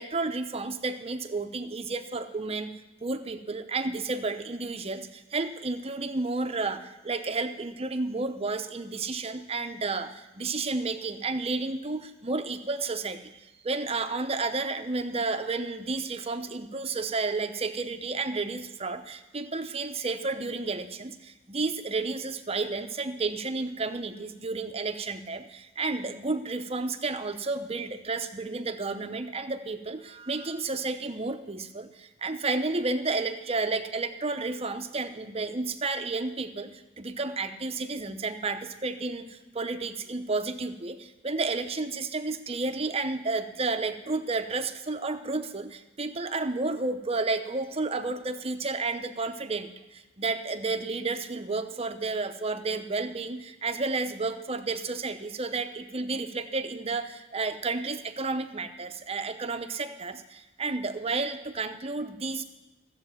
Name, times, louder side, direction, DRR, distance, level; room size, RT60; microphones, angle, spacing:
voice 1, 0.0-2.7 3.0-62.4, right 3 dB, 35° right, 8 dB, 0.8 m, -31 dB
14.5 x 7.8 x 7.3 m, 1.1 s
head